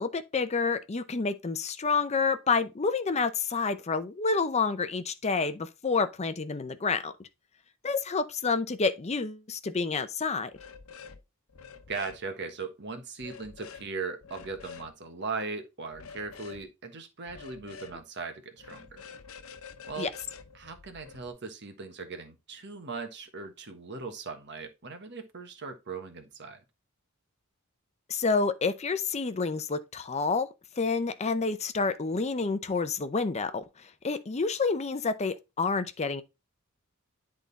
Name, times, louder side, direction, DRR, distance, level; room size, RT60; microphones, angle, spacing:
voice 1, 0.0-7.3 7.8-10.5 20.0-20.1 28.1-30.5 30.8-36.2, left 4 dB, 30° left, 0.6 m, -29 dB
sound 1, 10.5-11.2 11.5-12.2 13.2-13.8 14.2-14.9 15.9-16.6 17.3-18.0 18.6-21.3, left 6 dB, 70° left, 0.9 m, -47 dB
voice 2, 11.9-19.0 19.9-20.1 20.5-26.6, right 4 dB, 55° right, 1.4 m, -39 dB
10.5 x 3.8 x 4.0 m
head